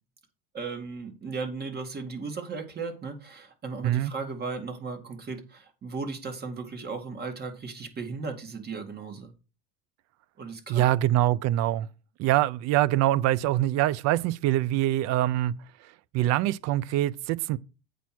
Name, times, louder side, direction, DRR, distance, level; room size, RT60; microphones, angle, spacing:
voice 1, 0.5-9.3 10.4-10.8, right 4 dB, 30° right, 2.1 m, -36 dB
voice 2, 10.7-11.9 12.2-15.5 15.8-17.6, right 14 dB, 55° right, 0.6 m, -24 dB
8.3 x 4.7 x 5.9 m
supercardioid pair, 110°, 31 cm